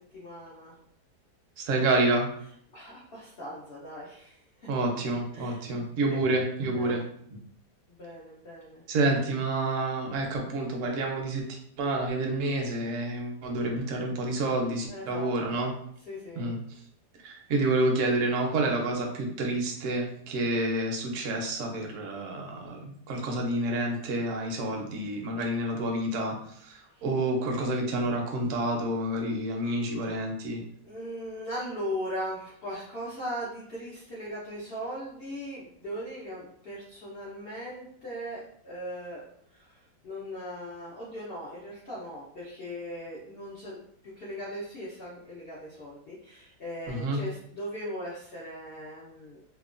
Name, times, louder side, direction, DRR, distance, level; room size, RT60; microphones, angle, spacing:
voice 1, 0.1-0.7 2.7-4.4 5.3-5.6 6.1-6.2 6.7-7.0 7.9-8.8 14.9-15.6 16.1-16.5 26.9-27.0 30.8-39.2 39.5-39.8 40.0-43.8 44.2-49.4, equal, 70° left, -7 dB, 0.5 m, -39 dB
voice 2, 1.6-2.3 4.7-7.0 8.9-11.4 11.8-15.7 16.4-16.6 17.2-26.3 26.6-30.6 46.9-47.2, right 2 dB, 65° right, 1 dB, 0.8 m, -28 dB
2.9 x 2.1 x 2.4 m, 0.66 s
omnidirectional pair, 1.8 m